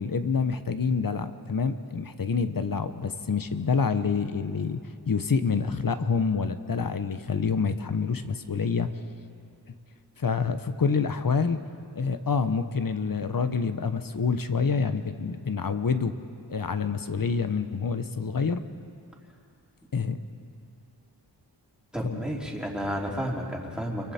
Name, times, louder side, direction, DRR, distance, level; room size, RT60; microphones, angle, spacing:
voice 1, 0.0-4.8 5.1-8.9 10.2-11.6 11.9-16.2 16.5-18.6 19.9-20.2 22.0-22.2, left 5 dB, 50° left, 10 dB, 1.0 m, -27 dB
voice 2, 21.9-24.1, equal, ahead, -2 dB, 3.4 m, -31 dB
29.5 x 23.5 x 4.4 m, 2.5 s
wide cardioid pair, 75°, 43 cm